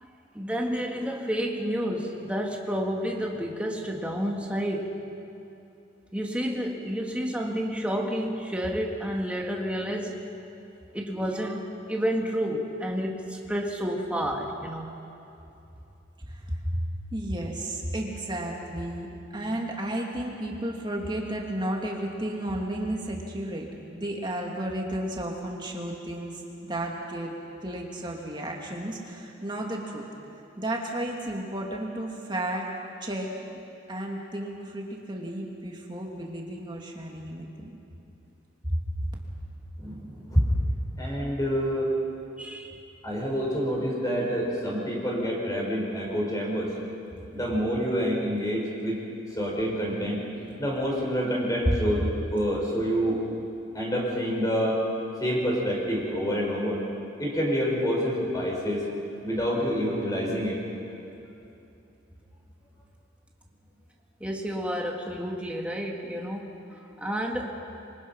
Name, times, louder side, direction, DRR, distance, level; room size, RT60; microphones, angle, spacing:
voice 1, 0.3-5.0 6.1-10.1 10.9-14.9 42.4-42.8 64.2-67.5, equal, 5° right, 0 dB, 2.0 m, -30 dB
voice 2, 16.3-16.8 17.1-27.3 27.6-30.1 30.6-32.7 33.0-33.3 33.9-37.7 38.7-39.2, right 1 dB, 25° right, -1 dB, 2.6 m, -33 dB
voice 3, 39.8-40.4 41.0-41.9 43.0-46.7 47.3-49.0 49.4-50.2 50.6-53.2 53.7-54.8 55.2-56.8 57.2-58.8 59.2-60.6, equal, 20° left, -3 dB, 5.2 m, -27 dB
26.0 x 24.0 x 5.7 m, 2.8 s
head